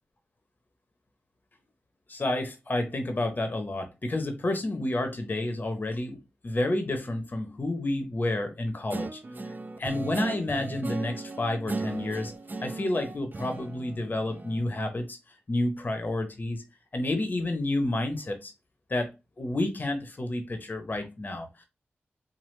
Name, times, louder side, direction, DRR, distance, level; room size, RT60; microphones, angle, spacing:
voice 1, 2.1-6.2 6.4-9.2 9.5-12.3 12.6-15.2 15.5-16.6 16.9-18.5 18.9-19.1 19.4-21.6, left 2 dB, 40° left, 0.7 m, -30 dB
Guitar, 8.9-14.7, right 3 dB, 45° right, 0.5 m, -36 dB
3.2 x 2.1 x 3.1 m
cardioid pair, 45°, 5 cm